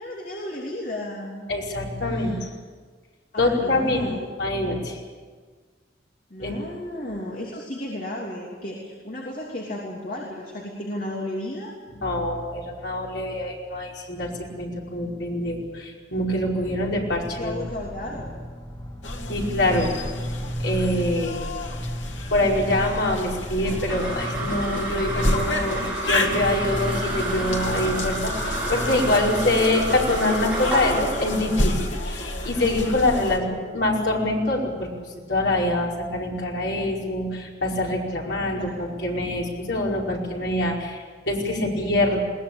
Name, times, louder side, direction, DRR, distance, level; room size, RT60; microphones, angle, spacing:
voice 1, 0.0-1.5 2.0-2.4 3.3-4.2 6.3-11.7 17.2-18.3 33.3-33.6 38.6-39.0, left 1 dB, 50° left, -2 dB, 3.2 m, -34 dB
voice 2, 1.5-2.5 3.4-4.1 4.4-5.0 6.4-6.5 12.0-14.3 14.6-17.5 19.3-19.9 20.6-21.4 22.3-25.8 26.1-31.7 32.0-34.9 35.3-42.2, left 1 dB, 70° left, -2 dB, 5.1 m, -25 dB
sound 1, 16.5-30.2, equal, 25° left, 3.0 m, -35 dB
sound 2, 19.0-33.4, left 1 dB, 90° left, 2.2 m, -30 dB
sound 3, 23.6-34.2, right 1 dB, 5° right, 7.5 m, -31 dB
21.5 x 19.0 x 8.7 m, 1.5 s
head